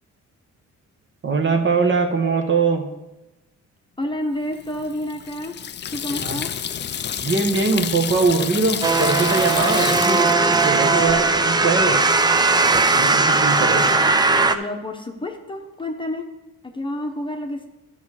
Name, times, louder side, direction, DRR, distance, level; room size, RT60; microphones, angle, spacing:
voice 1, 1.2-2.9 6.2-6.4 7.2-12.0 12.9-14.1, right 4 dB, 40° right, 5 dB, 1.2 m, -22 dB
voice 2, 4.0-5.5 5.9-6.5 14.5-16.3 16.6-17.7, left 1 dB, 15° left, 3 dB, 1.0 m, -29 dB
Water tap faucet / Sink (filling or washing), 4.5-11.3, left 8 dB, 40° left, 0.4 m, -29 dB
sound 1, 8.8-14.6, right 3 dB, 15° right, 0.5 m, -18 dB
12.0 x 5.7 x 4.9 m, 1.0 s
cardioid pair, 115°, 30 cm